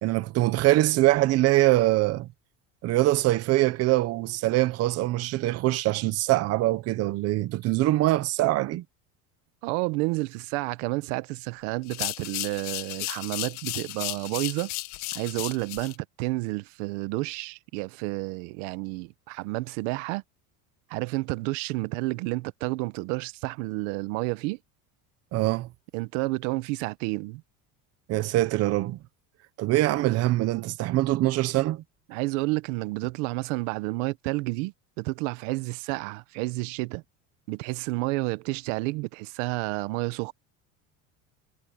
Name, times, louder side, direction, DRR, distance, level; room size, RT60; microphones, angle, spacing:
voice 1, 0.0-2.3 2.8-8.8 25.3-25.7 28.1-29.0 29.6-31.8, right 17 dB, 40° right, 0.9 m, -23 dB
voice 2, 9.6-14.7 15.1-20.2 20.9-24.6 25.9-27.4 32.1-37.0 37.5-40.3, right 23 dB, 80° right, 1.1 m, -30 dB
sound 1, 11.8-15.9, left 20 dB, 60° left, 1.8 m, -34 dB
cardioid pair, 170°, 38 cm